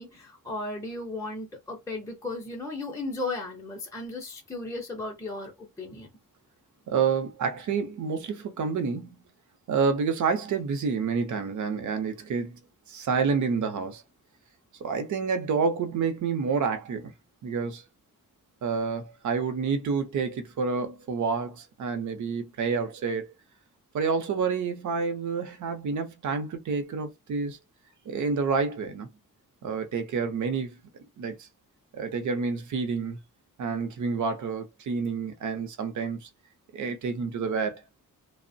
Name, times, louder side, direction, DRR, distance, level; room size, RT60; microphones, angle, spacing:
voice 1, 0.0-6.1, left 2 dB, 10° left, 0.5 m, -35 dB
voice 2, 6.9-9.2 9.7-12.6 12.9-14.0 14.8-17.1 17.4-17.8 18.6-23.3 23.9-27.6 28.1-29.1 29.6-30.8 31.2-31.5 31.9-33.2 33.6-36.3 36.7-37.8, right 5 dB, 70° right, 0.6 m, -28 dB
2.9 x 2.0 x 2.6 m
wide cardioid pair, 170°, 31 cm